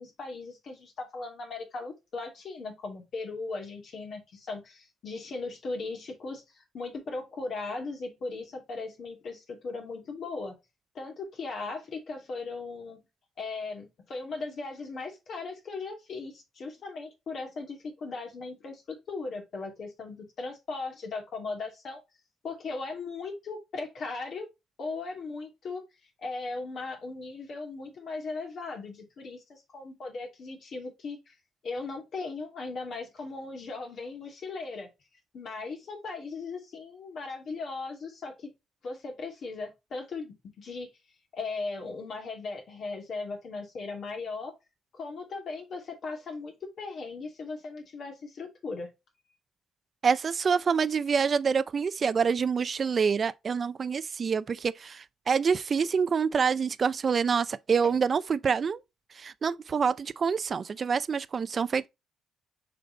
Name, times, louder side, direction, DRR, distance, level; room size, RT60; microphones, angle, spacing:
voice 1, 0.0-10.5 10.9-13.0 13.4-22.0 22.4-24.5 24.8-25.8 26.2-31.3 31.6-34.9 35.3-38.5 38.8-40.9 41.3-44.5 44.9-48.9 57.8-57.9, left 3 dB, 60° left, 2.6 m, -38 dB
voice 2, 50.0-58.8 59.1-61.9, right 6 dB, 45° right, 0.5 m, -26 dB
6.7 x 4.1 x 4.0 m
cardioid pair, 90°, 0 cm